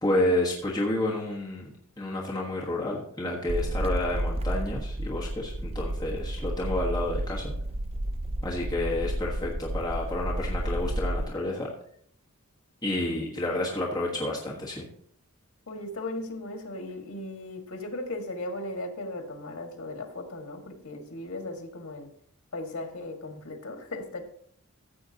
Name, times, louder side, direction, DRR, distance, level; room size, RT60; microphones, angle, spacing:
voice 1, 0.0-7.5 8.4-11.7 12.8-14.8, left 1 dB, 15° left, -4 dB, 1.3 m, -30 dB
sound 1, 3.5-11.2, right 1 dB, 25° right, 0.5 m, -31 dB
voice 2, 15.7-22.1 22.5-24.2, left 2 dB, 80° left, 4 dB, 1.8 m, -37 dB
14.5 x 7.6 x 2.8 m, 0.62 s
head